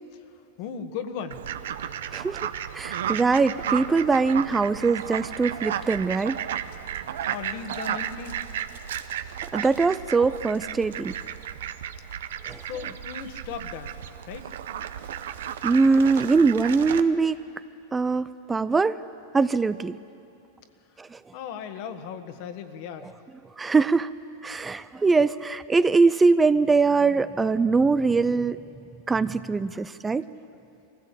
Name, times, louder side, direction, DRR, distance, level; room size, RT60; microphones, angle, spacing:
voice 1, 0.6-1.5 6.9-8.4 12.6-13.9 14.3-14.5 21.3-23.1, left 7 dB, 55° left, 8 dB, 1.5 m, -37 dB
Fowl, 1.3-17.0, right 9 dB, 75° right, 0.8 m, -33 dB
voice 2, 2.7-6.4 9.5-11.2 12.5-12.6 15.6-17.4 17.9-19.0 19.3-20.0 21.0-21.2 23.6-24.1 24.4-28.6 29.1-30.2, right 4 dB, 15° right, 15 dB, 0.4 m, -22 dB
22.5 x 15.5 x 8.4 m, 2.7 s
hypercardioid pair, 110°, 0 cm